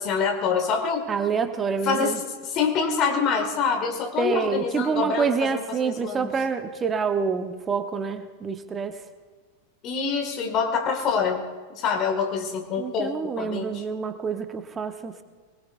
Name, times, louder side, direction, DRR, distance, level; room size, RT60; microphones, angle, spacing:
voice 1, 0.0-1.1 1.8-6.3 9.8-11.4 11.7-13.8, left 5 dB, 35° left, 4 dB, 2.1 m, -26 dB
voice 2, 1.1-2.2 4.2-9.0 12.8-15.2, right 5 dB, 20° right, 8 dB, 1.0 m, -27 dB
23.5 x 20.5 x 2.6 m, 1.4 s
figure-of-eight pair, 90°, 0 cm